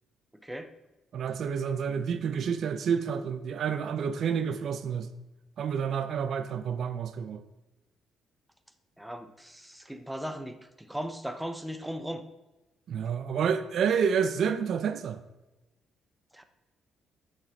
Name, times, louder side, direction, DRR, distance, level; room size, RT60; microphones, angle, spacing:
voice 1, 0.4-0.7 9.0-12.2 16.3-16.4, equal, 5° right, 0.9 m, -37 dB
voice 2, 1.1-5.1 5.6-7.4 12.9-15.2, right 7 dB, 65° right, 0.6 m, -29 dB
8.6 x 6.7 x 4.5 m
cardioid pair, 90°, 0 cm